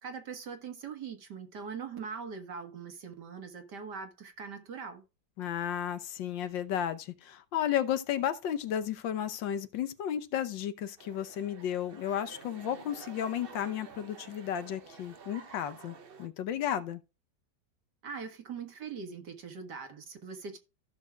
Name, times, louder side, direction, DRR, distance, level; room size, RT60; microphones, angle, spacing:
voice 1, 0.0-5.0 18.0-20.6, right 6 dB, 65° right, 2.2 m, -42 dB
voice 2, 5.4-17.0, left 10 dB, 85° left, 1.6 m, -33 dB
sound 1, 11.0-16.3, right 5 dB, 45° right, 0.7 m, -50 dB
14.5 x 6.4 x 2.3 m
omnidirectional pair, 2.0 m